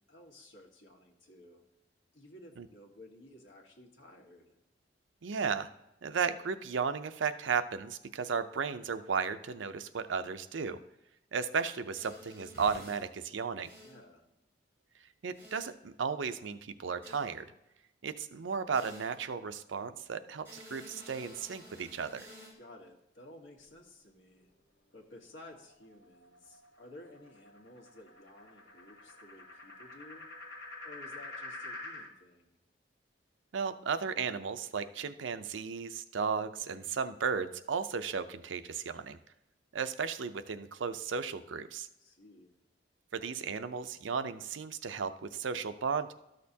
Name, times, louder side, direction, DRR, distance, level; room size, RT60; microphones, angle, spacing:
voice 1, 0.0-1.6 2.1-4.6 13.8-14.2 22.6-24.5 24.9-30.3 30.8-32.6 42.0-42.6, left 1 dB, 85° left, 1 dB, 1.6 m, -54 dB
voice 2, 5.2-5.7 6.0-10.8 11.3-13.7 15.2-17.5 18.0-22.3 33.5-39.2 39.7-41.9 43.1-46.1, right 5 dB, 85° right, 11 dB, 0.5 m, -35 dB
sound 1, 11.9-13.0 13.6-14.0 15.3-15.7 17.0-17.3 18.7-19.3 20.4-22.5, equal, 15° right, 2.7 m, -52 dB
sound 2, 25.4-32.1, left 2 dB, 55° left, 1.3 m, -48 dB
12.5 x 6.5 x 2.8 m, 0.90 s
head